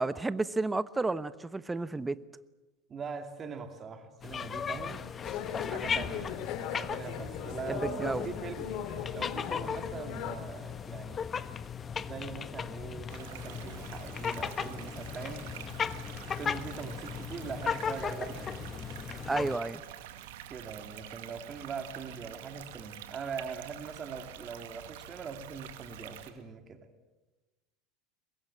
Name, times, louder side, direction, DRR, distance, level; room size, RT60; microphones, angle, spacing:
voice 1, 0.0-2.2 7.7-8.3 19.3-19.8, right 3 dB, 15° right, 16 dB, 1.1 m, -31 dB
voice 2, 2.9-5.0 5.7-8.7 9.1-11.3 12.0-15.4 16.3-18.7 20.5-26.9, right 5 dB, 35° right, 6 dB, 2.6 m, -42 dB
sound 1, 4.2-19.6, left 7 dB, 30° left, 1.1 m, -37 dB
sound 2, 5.2-10.4, left 8 dB, 60° left, 2.4 m, -38 dB
sound 3, 13.1-26.3, right 11 dB, 75° right, 2.2 m, -47 dB
23.5 x 21.0 x 8.6 m, 1.1 s
hypercardioid pair, 85°, 0 cm